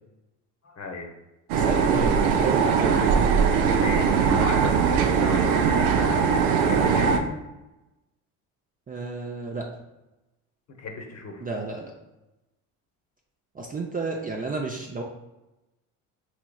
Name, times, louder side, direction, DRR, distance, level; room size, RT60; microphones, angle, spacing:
voice 1, 0.6-1.1 1.5-2.2 3.7-6.2 6.6-7.4 10.8-11.5, left 3 dB, 40° left, 3 dB, 0.8 m, -35 dB
voice 2, 1.5-3.0 8.9-9.7 11.4-11.9 13.5-15.0, right 3 dB, 20° right, 0 dB, 0.5 m, -31 dB
sound 1, 1.5-7.2, right 6 dB, 85° right, 0.5 m, -21 dB
4.8 x 3.0 x 2.3 m, 0.99 s
supercardioid pair, 75°, 41 cm